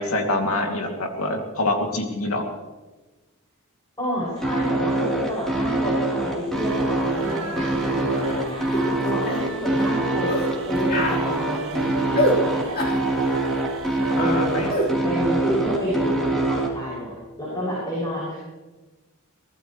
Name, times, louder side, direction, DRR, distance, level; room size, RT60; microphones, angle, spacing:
voice 1, 0.0-2.4 14.1-14.7, left 2 dB, 80° left, 2 dB, 2.7 m, -25 dB
voice 2, 4.0-10.4 10.7-12.7 14.2-14.8 15.0-17.1 17.4-18.4, equal, 20° left, -7 dB, 6.9 m, -29 dB
sound 1, 4.4-16.7, right 2 dB, ahead, 3.7 m, -24 dB
sound 2, 6.5-14.7, right 3 dB, 75° right, 2.1 m, -35 dB
sound 3, 8.7-8.9 9.3-9.5 10.3-10.5 10.9-11.2 12.2-12.4 12.8-13.0 14.7-14.9, equal, 45° left, 4.2 m, -24 dB
24.0 x 18.5 x 3.2 m, 1.2 s
head